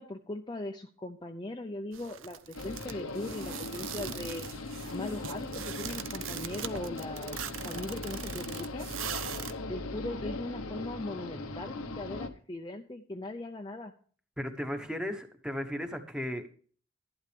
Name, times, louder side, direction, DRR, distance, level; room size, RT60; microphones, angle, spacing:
voice 1, 0.0-4.5 4.9-8.9 9.7-13.9, left 1 dB, 20° left, 3 dB, 0.6 m, -39 dB
sound 1, 1.9-9.5, right 9 dB, 65° right, 0.6 m, -41 dB
sound 2, 2.5-12.3, left 2 dB, 90° left, 1.1 m, -39 dB
voice 2, 14.4-16.5, equal, 5° right, 6 dB, 1.1 m, -35 dB
11.5 x 11.0 x 3.3 m, 0.43 s
head